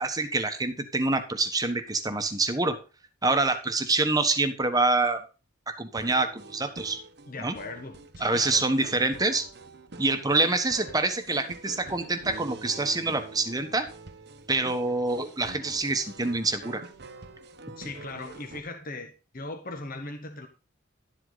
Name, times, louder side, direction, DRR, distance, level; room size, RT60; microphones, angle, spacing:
voice 1, 0.0-2.8 3.2-5.2 5.7-7.0 7.4-7.5 8.2-9.4 10.0-13.9 14.5-16.8, right 3 dB, 20° right, 8 dB, 1.2 m, -26 dB
sound 1, 6.0-18.6, right 3 dB, 55° right, 1.1 m, -46 dB
voice 2, 7.3-9.1 17.8-20.5, left 2 dB, 45° left, 5 dB, 1.2 m, -39 dB
12.0 x 8.0 x 4.0 m, 0.34 s
head